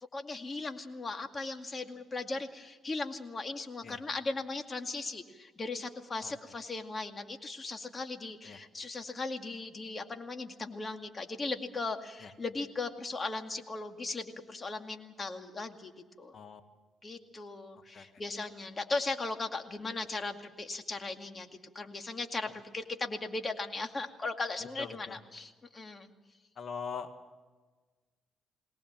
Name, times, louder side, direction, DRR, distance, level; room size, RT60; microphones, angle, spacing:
voice 1, 0.1-15.9 16.2-16.3 17.0-21.5 21.7-26.1, left 3 dB, 30° left, 5 dB, 2.2 m, -38 dB
voice 2, 24.8-25.2 26.6-27.1, left 6 dB, 50° left, 7 dB, 1.8 m, -41 dB
22.0 x 19.0 x 7.4 m, 1.3 s
cardioid pair, 90°, 0 cm